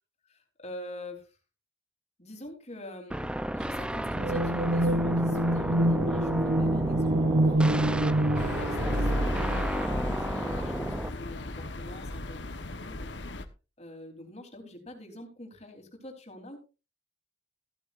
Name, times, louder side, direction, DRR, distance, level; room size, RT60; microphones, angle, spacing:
voice 1, 0.3-1.4 2.2-3.3 3.6-7.8 8.4-13.1 13.8-16.6, left 1 dB, 35° left, 4 dB, 3.6 m, -45 dB
sound 1, 3.1-11.1, equal, 5° right, 0.5 m, -33 dB
sound 2, 4.1-10.1, right 1 dB, 60° right, 0.8 m, -26 dB
sound 3, 8.4-13.5, left 1 dB, 75° left, 1.2 m, -34 dB
15.0 x 12.5 x 2.5 m, 0.31 s
head